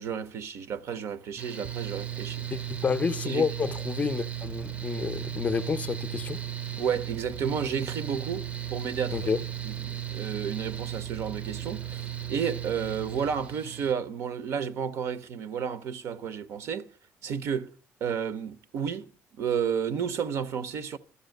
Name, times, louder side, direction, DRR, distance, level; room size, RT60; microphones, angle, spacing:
voice 1, 0.0-2.4 3.2-3.4 6.8-9.3 9.7-16.9 17.2-17.7 18.0-19.1 19.4-21.0, right 7 dB, 65° right, 0.9 m, -32 dB
Mechanical fan, 1.4-13.9, right 11 dB, 25° right, 0.6 m, -36 dB
voice 2, 2.5-6.4 9.1-9.4, left 5 dB, 30° left, 0.5 m, -29 dB
13.0 x 7.1 x 9.1 m
cardioid pair, 140°, 5 cm